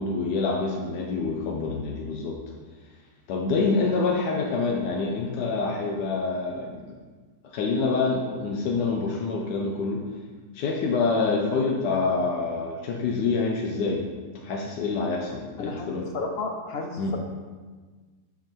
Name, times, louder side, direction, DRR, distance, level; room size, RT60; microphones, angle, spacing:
voice 1, 0.0-2.4 3.3-7.0 7.5-10.0 10.5-14.0 14.4-16.1 17.0-17.1, left 4 dB, 90° left, -1 dB, 1.4 m, -26 dB
voice 2, 15.6-17.2, left 3 dB, 70° left, 3 dB, 0.5 m, -32 dB
9.4 x 3.9 x 4.4 m, 1.4 s
omnidirectional pair, 1.8 m